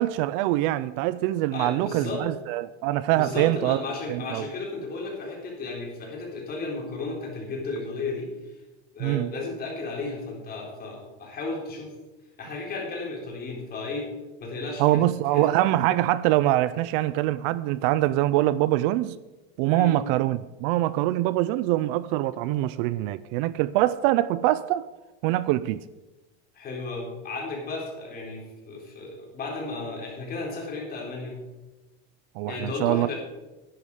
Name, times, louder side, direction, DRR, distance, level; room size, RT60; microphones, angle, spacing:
voice 1, 0.0-3.8 4.1-4.4 9.0-9.3 14.8-19.2 19.6-24.9 25.2-25.8 32.4-33.1, right 15 dB, 55° right, 0.4 m, -24 dB
voice 2, 1.5-2.3 3.1-8.6 8.9-11.9 12.4-14.1 14.4-15.5 19.7-20.0 26.5-31.4 32.5-33.1, left 3 dB, 30° left, 4.0 m, -34 dB
11.5 x 10.5 x 4.9 m
supercardioid pair, 140°, 33 cm